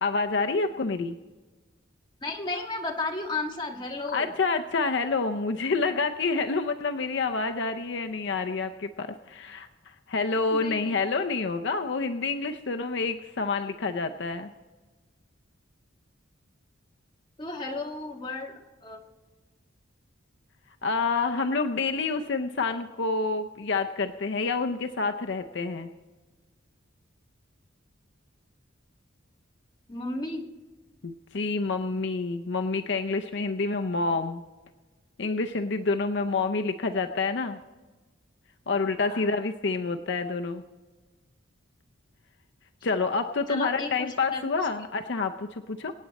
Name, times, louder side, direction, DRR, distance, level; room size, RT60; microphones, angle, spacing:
voice 1, 0.0-1.2 4.1-14.5 20.8-25.9 31.0-34.4 35.2-37.6 38.7-40.6 42.8-45.9, left 4 dB, 60° left, 6 dB, 0.6 m, -28 dB
voice 2, 2.2-4.3 10.5-11.0 17.4-19.0 29.9-30.4 39.1-39.3 43.5-44.4 44.8-44.9, left 3 dB, 20° left, 0 dB, 1.6 m, -34 dB
26.0 x 8.8 x 4.1 m, 1.3 s
head